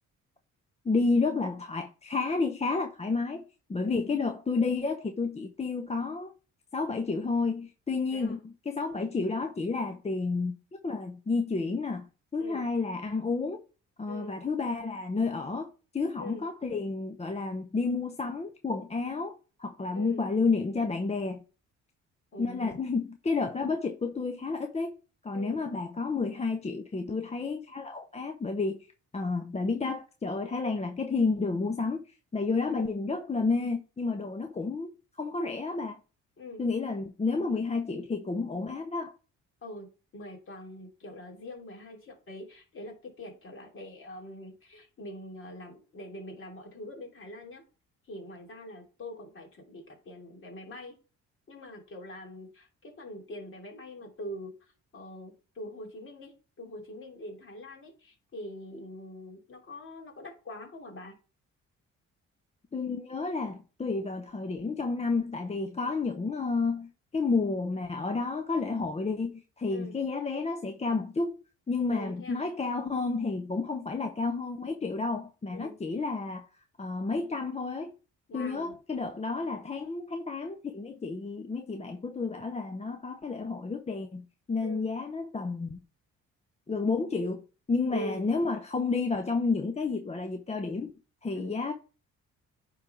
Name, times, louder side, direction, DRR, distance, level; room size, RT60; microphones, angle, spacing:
voice 1, 0.8-3.4 3.7-6.3 6.7-10.6 10.8-13.6 14.0-21.4 22.4-24.9 25.2-28.8 29.1-32.0 32.3-36.0 36.6-39.1 62.7-71.4 71.7-76.5 76.8-77.9 78.3-85.8 86.7-90.9 91.2-91.7, left 4 dB, 20° left, 0.7 m, -31 dB
voice 2, 19.9-20.3 22.3-22.8 25.3-25.6 32.7-32.9 36.4-36.6 39.6-39.9 40.1-47.6 48.1-51.0 51.5-61.1 69.7-70.0 71.9-72.4 75.5-75.8 78.3-78.8 84.6-84.9 87.9-88.3 91.3-91.6, left 1 dB, 45° left, 3.0 m, -43 dB
9.3 x 4.0 x 4.4 m
cardioid pair, 90°, 30 cm